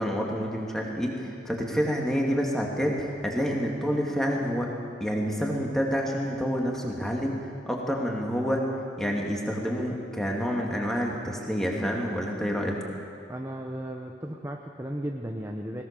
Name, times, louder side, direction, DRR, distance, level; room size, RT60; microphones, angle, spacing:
voice 1, 0.0-4.7 5.0-8.6 9.0-12.8, equal, ahead, -1 dB, 2.5 m, -28 dB
voice 2, 13.3-15.8, right 1 dB, 15° right, 2 dB, 0.9 m, -35 dB
20.5 x 20.0 x 6.9 m, 2.5 s
head